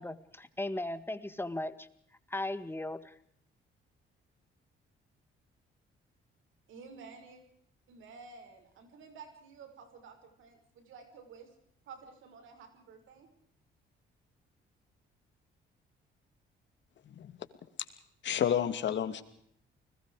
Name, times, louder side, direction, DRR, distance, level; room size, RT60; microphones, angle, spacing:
voice 1, 0.0-1.9 2.3-3.1, left 1 dB, 10° left, 12 dB, 2.0 m, -37 dB
voice 2, 6.7-7.4 7.9-11.5 11.8-13.3, right 5 dB, 80° right, 6 dB, 6.2 m, -52 dB
voice 3, 18.2-19.2, left 9 dB, 65° left, 10 dB, 2.6 m, -30 dB
30.0 x 20.5 x 5.0 m, 0.69 s
cardioid pair, 90°, 20 cm